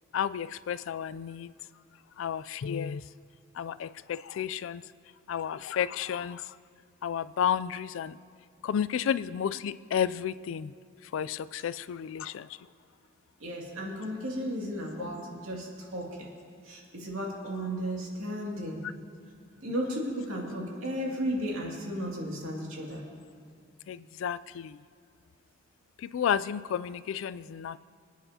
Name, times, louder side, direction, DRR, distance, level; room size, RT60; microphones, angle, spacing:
voice 1, 0.1-1.5 2.2-3.0 3.6-4.8 5.3-6.4 7.0-8.2 8.6-10.7 11.1-12.5 23.9-24.8 26.1-27.8, left 8 dB, 70° left, 16 dB, 0.3 m, -32 dB
voice 2, 13.4-16.3 16.6-18.8 19.6-23.0, equal, 90° right, -2 dB, 2.4 m, -34 dB
27.0 x 9.3 x 2.8 m, 2.2 s
head